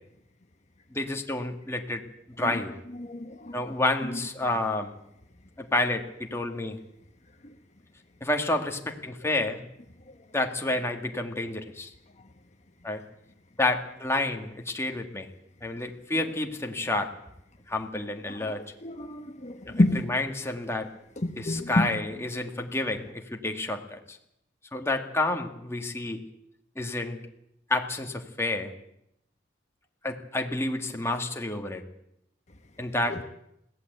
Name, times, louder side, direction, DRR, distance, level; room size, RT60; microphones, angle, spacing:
voice 1, 0.9-2.0 2.4-2.7 3.5-4.9 5.6-6.8 8.2-9.6 10.3-11.9 12.8-13.0 13.6-15.3 15.6-17.1 17.7-18.6 19.8-20.9 21.4-24.2 24.7-26.2 26.8-27.2 27.7-28.7 30.0-31.8 32.8-33.2, left 2 dB, 15° left, 3 dB, 1.9 m, -29 dB
voice 2, 3.0-3.6 18.4-20.0 21.2-21.9 33.1-33.2, left 1 dB, 40° left, 5 dB, 1.2 m, -28 dB
21.5 x 16.5 x 8.1 m, 0.78 s
head